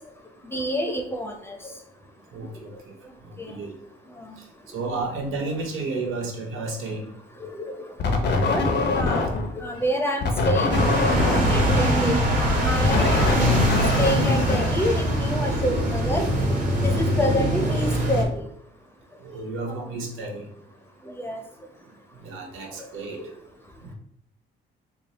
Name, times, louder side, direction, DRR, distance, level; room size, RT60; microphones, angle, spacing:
voice 1, 0.5-1.6 3.4-3.5 4.2-4.4 4.9-5.0 7.4-7.8 8.2-8.7 8.9-10.8 11.5-13.6 14.0-16.2 16.8-18.4 19.7-19.8 21.0-21.4 23.2-23.3, equal, 10° left, 3 dB, 0.7 m, -28 dB
voice 2, 2.3-2.7 3.5-3.7 4.7-7.0 11.3-11.5 19.2-20.4 22.2-23.2, right 3 dB, 85° right, 1 dB, 1.0 m, -32 dB
sound 1, 8.0-9.6 10.2-15.3, left 3 dB, 60° left, 0.7 m, -24 dB
sound 2, 10.7-18.2, right 1 dB, 40° right, 1.3 m, -23 dB
3.5 x 2.0 x 4.0 m, 0.73 s
cardioid pair, 90°, 20 cm